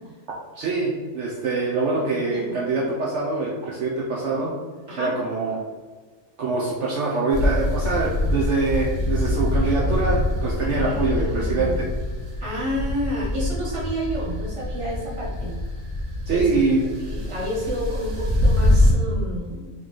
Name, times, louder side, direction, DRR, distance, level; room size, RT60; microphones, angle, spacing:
voice 1, 0.5-4.5 5.0-5.6 6.4-11.9 16.3-16.8, right 3 dB, 65° right, -3 dB, 0.9 m, -24 dB
sound 1, 7.3-18.9, left 1 dB, 85° right, 1.4 m, -24 dB
voice 2, 10.6-11.8 12.4-15.5 16.3-16.5 17.0-19.7, equal, 25° right, -6 dB, 1.2 m, -30 dB
4.0 x 3.1 x 3.8 m, 1.4 s
omnidirectional pair, 1.4 m